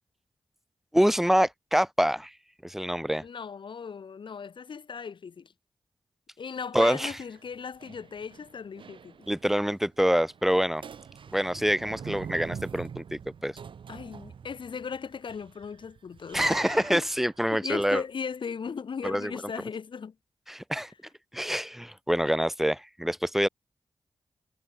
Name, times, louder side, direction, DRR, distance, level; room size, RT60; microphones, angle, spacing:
voice 1, 0.9-2.3 2.6-3.2 6.7-7.2 9.3-10.8 11.3-13.6 16.3-18.0 19.0-19.3 20.5-20.9 21.3-23.5, equal, 5° right, 1.8 m, -26 dB
voice 2, 3.2-5.5 6.4-9.2 13.9-16.4 16.9-17.0 17.5-20.1, left 6 dB, 75° left, 7.2 m, -37 dB
sound 1, 7.1-9.6 9.9-10.0 10.2-10.5 10.8-17.4, right 7 dB, 80° right, 6.3 m, -44 dB
cardioid pair, 50°, 8 cm